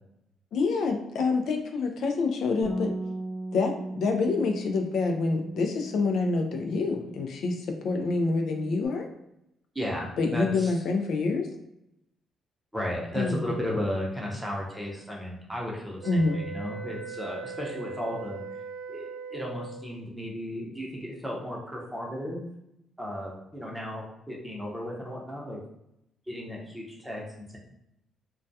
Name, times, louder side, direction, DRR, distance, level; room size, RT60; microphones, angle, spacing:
voice 1, 0.5-2.9 3.5-9.1 10.2-11.5 13.1-13.6 16.0-16.4, left 3 dB, 70° left, 3 dB, 0.3 m, -27 dB
Bass guitar, 2.6-7.3 7.6-8.9, right 1 dB, 35° left, 0.9 m, -38 dB
voice 2, 9.7-10.7 12.7-18.4 18.9-22.4 23.0-25.6 26.3-27.6, equal, 5° right, -3 dB, 0.7 m, -34 dB
sound 1, 16.0-19.9, right 6 dB, 45° right, 0.3 m, -40 dB
2.2 x 2.2 x 2.6 m, 0.83 s
cardioid pair, 90°, 0 cm